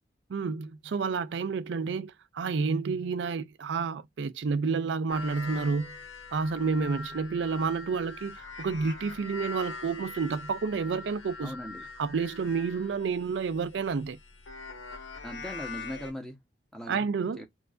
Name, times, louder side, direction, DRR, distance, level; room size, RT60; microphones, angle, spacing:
voice 1, 0.3-5.9 6.3-11.5 12.0-14.2 16.9-17.5, right 5 dB, 70° right, 0.4 m, -30 dB
sound 1, 5.1-16.1, left 4 dB, 90° left, 1.2 m, -43 dB
voice 2, 11.4-11.9 15.2-16.4 16.7-17.0 17.4-17.5, equal, 5° left, 0.9 m, -39 dB
4.5 x 2.5 x 2.4 m
head